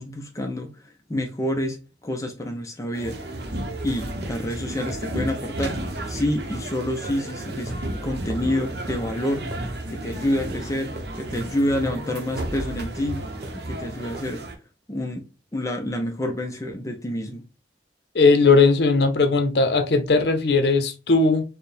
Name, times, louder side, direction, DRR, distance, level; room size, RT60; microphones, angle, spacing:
voice 1, 0.0-3.4 3.8-7.8 8.0-9.5 9.9-13.3 13.5-14.5 14.9-17.4, left 1 dB, 20° left, 0.5 m, -28 dB
sound 1, 2.9-14.6, right 1 dB, 60° right, 0.7 m, -33 dB
sound 2, 4.2-4.4 4.9-5.1 5.6-5.8 7.0-7.3 7.7-7.8 8.3-8.5 8.9-9.1 9.5-9.7 11.0-11.5 11.9-12.1 12.6-12.8 13.4-13.7 14.1-14.4, right 1 dB, 35° right, 0.9 m, -38 dB
voice 2, 18.1-21.4, left 3 dB, 65° left, 0.7 m, -18 dB
4.5 x 2.1 x 3.3 m
head